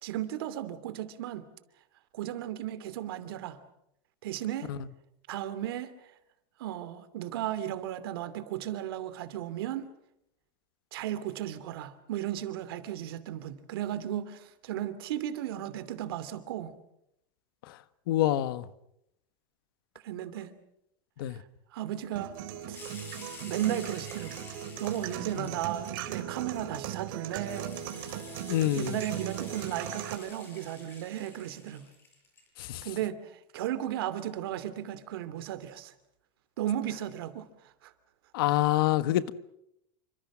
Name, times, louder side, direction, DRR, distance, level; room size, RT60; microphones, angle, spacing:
voice 1, 0.0-1.5 2.1-3.6 4.2-4.7 5.3-5.9 6.6-9.9 10.9-16.7 20.0-20.5 21.3-21.4 21.7-22.3 22.7-22.9 23.4-24.4 24.8-27.7 28.8-31.9 32.8-35.9 36.6-37.5 37.8-37.9, right 12 dB, 85° right, 2.7 m, -35 dB
voice 2, 18.1-18.7 21.2-21.4 25.4-25.5 28.5-29.0 32.6-32.8 38.3-39.3, left 14 dB, 75° left, 1.4 m, -26 dB
sound 1, 22.2-30.1, right 11 dB, 65° right, 3.7 m, -38 dB
sound 2, 22.7-32.5, left 2 dB, 15° left, 7.7 m, -49 dB
28.5 x 25.5 x 6.2 m
supercardioid pair, 175°, 12 cm